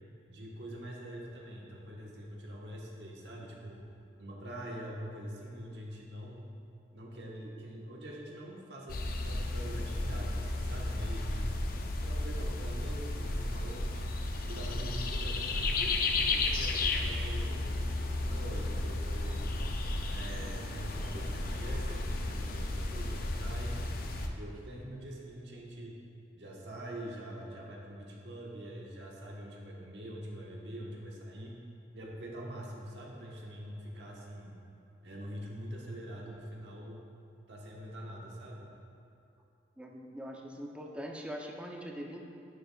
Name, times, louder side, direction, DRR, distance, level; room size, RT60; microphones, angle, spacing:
voice 1, 0.3-3.9 4.2-6.5 6.9-11.5 11.9-14.1 14.5-17.6 18.0-19.6 20.1-23.8 24.3-26.0 26.3-31.6 31.9-34.6 35.0-37.0 37.5-38.7, equal, 80° right, -2 dB, 1.2 m, -44 dB
sound 1, 8.9-24.3, left 2 dB, 55° left, 0.5 m, -33 dB
voice 2, 39.8-42.2, equal, 5° right, 0 dB, 0.6 m, -42 dB
10.5 x 6.9 x 2.3 m, 2.6 s
head